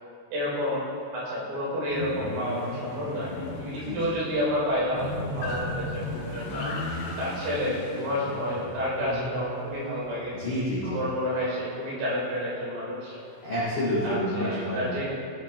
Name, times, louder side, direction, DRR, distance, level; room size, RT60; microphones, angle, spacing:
voice 1, 0.3-0.8 1.1-6.8 7.2-10.3 10.8-13.2 14.0-15.1, equal, 80° right, -7 dB, 5.7 m, -30 dB
sound 1, 1.9-10.8 13.2-14.1, left 2 dB, 75° left, 3.6 m, -37 dB
voice 2, 9.0-9.3 10.3-11.0 13.4-14.9, equal, 45° left, -8 dB, 1.3 m, -29 dB
16.5 x 8.3 x 3.2 m, 2.4 s
omnidirectional pair, 5.6 m